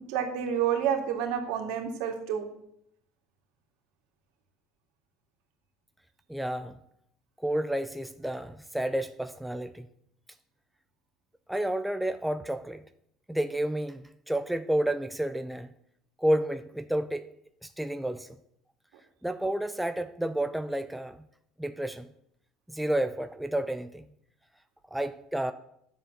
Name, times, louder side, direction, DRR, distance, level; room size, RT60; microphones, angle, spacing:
voice 1, 0.0-2.4, right 8 dB, 70° right, 4 dB, 2.3 m, -29 dB
voice 2, 6.3-6.8 7.4-9.9 11.5-12.8 13.3-15.7 16.2-17.3 17.6-18.3 19.2-21.2 21.6-22.1 22.7-24.0 24.9-25.5, right 1 dB, ahead, 9 dB, 0.4 m, -30 dB
10.5 x 7.4 x 6.6 m, 0.73 s
cardioid pair, 160°, 0 cm